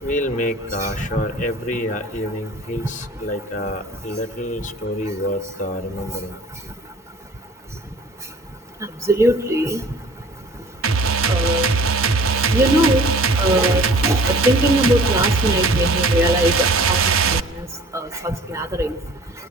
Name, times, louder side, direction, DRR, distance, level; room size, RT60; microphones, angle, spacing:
voice 1, 0.0-6.4, left 1 dB, 35° left, 6 dB, 1.3 m, -27 dB
voice 2, 9.1-9.8 11.3-11.7 12.5-13.1 13.4-16.5 16.9-17.0 17.9-18.9, equal, 15° right, 8 dB, 0.9 m, -20 dB
sound 1, 10.8-17.4, right 5 dB, 85° right, 1.1 m, -19 dB
29.5 x 19.5 x 9.0 m, 0.97 s
head